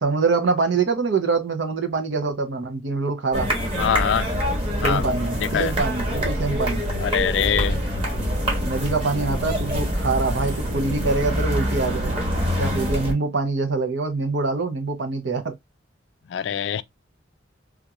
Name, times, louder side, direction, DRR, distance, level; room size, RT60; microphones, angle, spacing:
voice 1, 0.0-3.5 4.8-6.9 8.6-12.1 12.6-15.6, right 4 dB, 75° right, 0.7 m, -24 dB
sound 1, 3.3-13.1, equal, 30° right, 1.2 m, -25 dB
voice 2, 3.8-4.3 4.8-5.1 5.4-5.7 7.0-7.8 16.3-16.8, left 8 dB, 70° left, 0.3 m, -23 dB
3.6 x 2.4 x 2.9 m
head